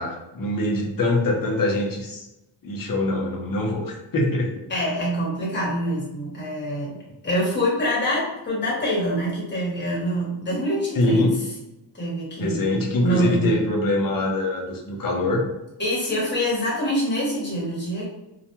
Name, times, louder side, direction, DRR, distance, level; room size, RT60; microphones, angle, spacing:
voice 1, 0.0-2.3 2.6-4.7 10.9-11.4 12.4-15.4, left 2 dB, 45° left, 0 dB, 0.6 m, -23 dB
voice 2, 4.7-6.9 7.2-11.3 11.9-13.6 15.8-18.0, equal, 20° left, -5 dB, 0.9 m, -25 dB
2.3 x 2.2 x 2.8 m, 0.96 s
wide cardioid pair, 150°, 48 cm